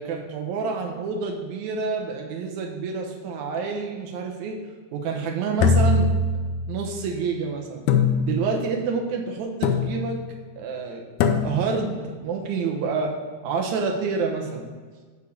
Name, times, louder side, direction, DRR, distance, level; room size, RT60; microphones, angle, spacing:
voice 1, 0.0-4.6 4.9-6.1 6.7-7.8 8.2-10.2 10.6-11.0 11.4-13.1 13.4-14.6, right 5 dB, 80° right, 1 dB, 2.4 m, -28 dB
sound 1, 5.6-6.8 7.9-8.7 9.6-10.2 11.2-11.9, left 4 dB, 90° left, 2.1 m, -22 dB
6.8 x 4.8 x 6.7 m, 1.4 s
omnidirectional pair, 3.4 m